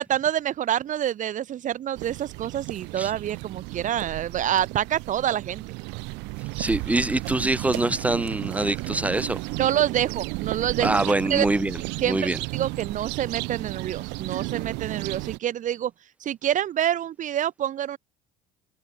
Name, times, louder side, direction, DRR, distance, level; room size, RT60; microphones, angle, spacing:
voice 1, 0.0-5.6 9.5-10.9 11.3-11.4 12.0-15.9 16.2-18.0, right 11 dB, 45° right, 1.6 m, -27 dB
sound 1, 1.9-15.4, right 26 dB, 80° right, 1.6 m, -33 dB
voice 2, 6.6-9.4 10.8-11.8 12.1-12.4, right 2 dB, 10° right, 0.9 m, -24 dB
cardioid pair, 125°, 18 cm